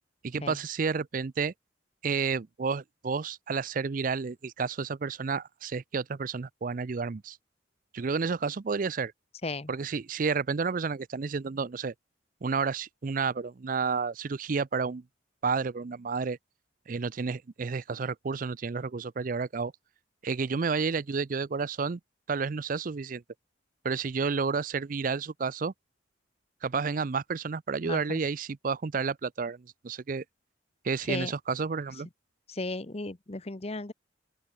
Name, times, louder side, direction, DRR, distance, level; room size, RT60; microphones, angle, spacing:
voice 1, 0.2-1.5 2.0-7.4 7.9-9.1 9.7-11.9 12.4-15.0 15.4-16.4 16.9-19.7 20.2-22.0 22.3-23.2 23.8-25.7 26.6-30.2 30.8-32.1, right 5 dB, 45° right, 0.5 m, -31 dB
voice 2, 27.8-28.2 31.1-31.3 32.5-33.9, left 2 dB, 30° left, 0.9 m, -35 dB
open air
head